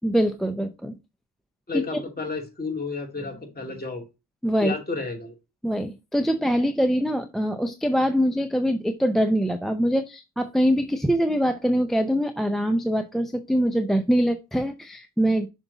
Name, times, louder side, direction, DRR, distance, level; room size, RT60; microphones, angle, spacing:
voice 1, 0.0-0.9 1.7-2.0 4.4-4.7 5.6-15.5, equal, ahead, 0.5 m, -23 dB
voice 2, 1.7-4.0 4.6-5.3, left 4 dB, 25° left, 2.3 m, -31 dB
5.9 x 5.5 x 3.9 m
wide cardioid pair, 110°, 39 cm